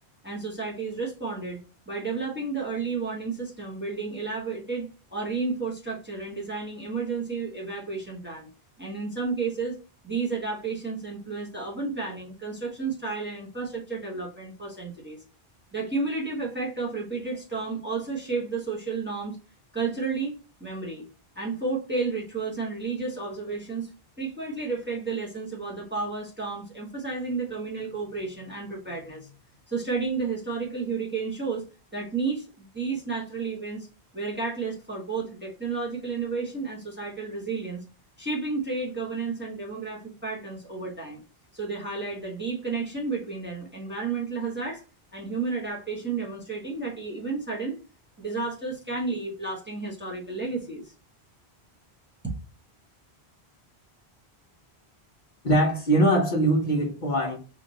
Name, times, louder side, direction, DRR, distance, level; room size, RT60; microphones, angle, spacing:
voice 1, 0.2-8.5 8.8-9.8 10.0-15.2 15.7-19.4 19.7-21.1 21.3-23.9 24.2-29.3 29.7-31.6 31.9-33.9 34.1-37.8 38.2-41.2 41.5-44.8 45.1-47.8 48.2-50.9, right 4 dB, 10° right, -3 dB, 0.8 m, -32 dB
voice 2, 55.4-57.4, right 1 dB, 50° left, 1 dB, 0.9 m, -22 dB
3.1 x 2.5 x 3.9 m, 0.33 s
omnidirectional pair, 1.1 m